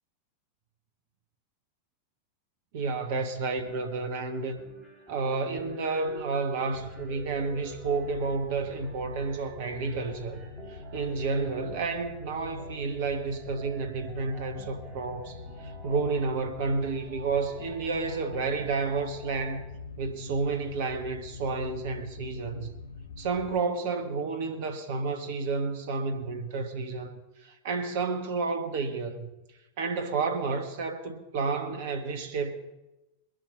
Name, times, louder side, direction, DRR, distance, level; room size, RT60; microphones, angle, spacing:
voice 1, 2.7-4.6 5.1-19.7 20.0-22.7 23.2-27.1 27.4-29.3 29.8-32.6, right 4 dB, 50° right, 1.3 m, -31 dB
sound 1, 3.6-19.6, right 2 dB, 15° right, 4.6 m, -48 dB
sound 2, 6.7-23.6, left 4 dB, 70° left, 0.9 m, -44 dB
21.5 x 7.7 x 5.6 m
figure-of-eight pair, 90°, 0 cm